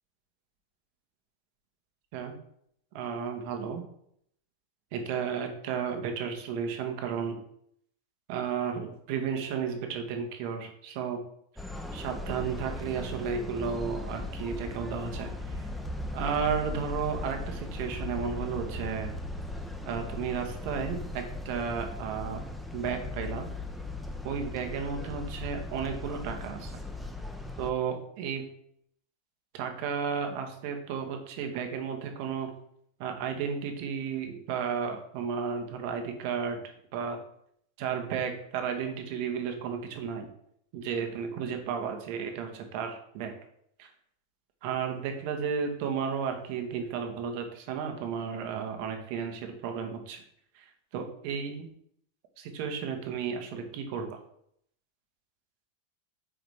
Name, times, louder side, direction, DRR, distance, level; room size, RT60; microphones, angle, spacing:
voice 1, 2.9-3.8 4.9-7.4 8.3-11.2 11.9-15.3 16.1-19.1 19.8-22.4 22.7-23.5 24.2-26.7 27.6-28.5 29.5-32.5 33.0-36.6 36.9-37.2 37.8-40.3 40.7-43.3 43.8-43.9 44.6-50.2 50.5-50.6 50.9-51.7 52.4-54.1, right 6 dB, 55° right, 4 dB, 1.2 m, -33 dB
sound 1, 11.6-27.7, left 2 dB, ahead, 0.7 m, -38 dB
5.0 x 4.0 x 4.9 m, 0.70 s
hypercardioid pair, 95°, 0 cm